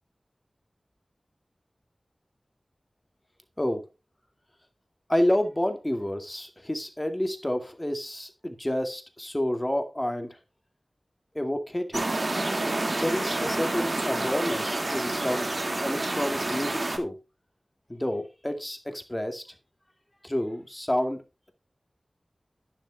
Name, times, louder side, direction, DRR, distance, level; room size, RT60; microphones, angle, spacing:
voice 1, 5.1-10.4 11.3-12.1 12.9-15.5 15.8-17.2 17.9-19.4 20.2-21.2, left 1 dB, 15° left, 2.2 m, -29 dB
sound 1, 11.9-17.0, right 2 dB, 50° right, 2.1 m, -28 dB
12.0 x 9.9 x 2.3 m
wide cardioid pair, 75°, 0 cm